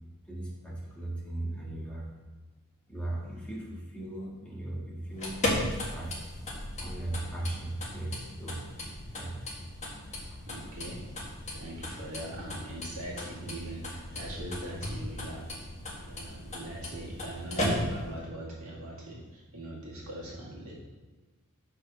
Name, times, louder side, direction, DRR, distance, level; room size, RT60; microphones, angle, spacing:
voice 1, 0.3-2.1 2.9-6.1 6.8-8.6 9.1-9.4 10.3-10.4, right 1 dB, 5° left, -5 dB, 1.6 m, -38 dB
sound 1, 5.0-18.2, left 1 dB, 30° left, 1.7 m, -36 dB
voice 2, 10.5-11.0 11.5-15.6 16.0-20.7, right 1 dB, 70° right, -4 dB, 2.3 m, -41 dB
6.6 x 5.8 x 5.7 m, 1.2 s
head